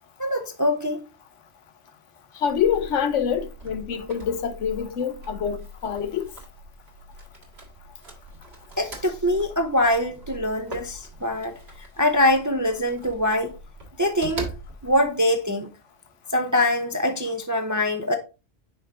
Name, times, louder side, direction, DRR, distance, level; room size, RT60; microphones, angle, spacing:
voice 1, 0.2-1.0 8.8-11.5 12.0-13.5 14.0-14.5 14.8-15.7 16.3-18.2, left 1 dB, 25° right, 0.4 m, -23 dB
voice 2, 2.3-6.3, left 8 dB, 80° left, 1.1 m, -26 dB
sound 1, 2.4-15.1, right 1 dB, 60° right, 2.0 m, -42 dB
6.0 x 4.9 x 3.4 m
omnidirectional pair, 1.2 m